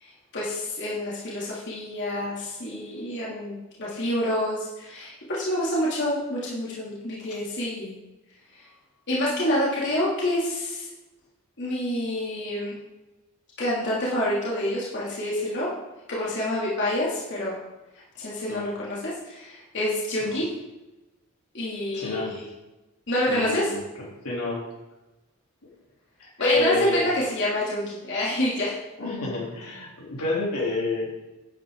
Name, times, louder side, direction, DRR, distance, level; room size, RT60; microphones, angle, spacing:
voice 1, 0.0-7.9 9.1-10.8 11.6-12.7 13.6-15.7 16.1-17.6 18.2-20.5 21.5-22.4 23.1-23.7 26.4-28.8, left 1 dB, 50° left, -7 dB, 3.0 m, -27 dB
voice 2, 21.9-22.4 23.3-23.8 24.2-24.6 26.2-27.0 29.0-31.1, left 2 dB, 80° left, -4 dB, 3.7 m, -28 dB
11.0 x 10.0 x 4.0 m, 1.0 s
head